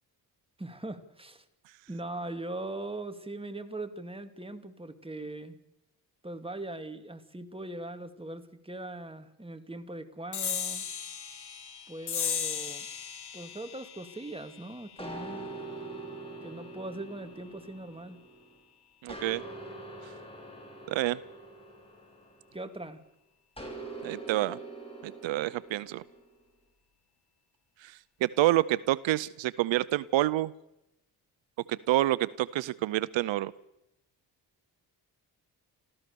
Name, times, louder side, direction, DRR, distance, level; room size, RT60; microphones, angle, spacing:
voice 1, 0.6-1.4 1.9-5.6 6.2-10.9 11.9-12.9 13.3-15.5 16.4-18.2 22.5-23.0, right 2 dB, 10° right, 8 dB, 2.4 m, -40 dB
sound 1, 10.3-17.2, left 7 dB, 60° left, 2.2 m, -38 dB
sound 2, 15.0-18.6 19.1-22.8 23.6-26.2, right 2 dB, 15° left, 5.8 m, -44 dB
voice 2, 19.0-19.4 20.9-21.2 24.0-24.6 25.0-26.0 27.8-30.5 31.7-33.5, right 15 dB, 85° right, 19 dB, 0.7 m, -28 dB
27.5 x 14.5 x 7.0 m, 0.86 s
cardioid pair, 65°, 44 cm